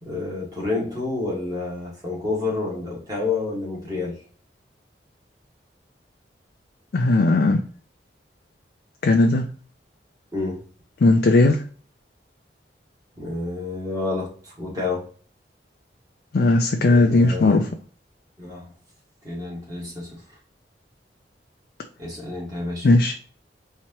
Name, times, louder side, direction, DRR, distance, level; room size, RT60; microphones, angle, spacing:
voice 1, 0.0-4.2 10.3-10.6 13.2-15.1 16.8-17.7 18.4-18.7 19.2-20.2 22.0-22.9, left 3 dB, 20° right, -4 dB, 1.7 m, -29 dB
voice 2, 6.9-7.6 9.0-9.5 11.0-11.6 16.3-17.6 22.8-23.1, left 2 dB, 55° left, 4 dB, 0.4 m, -17 dB
4.5 x 2.9 x 2.8 m, 0.43 s
head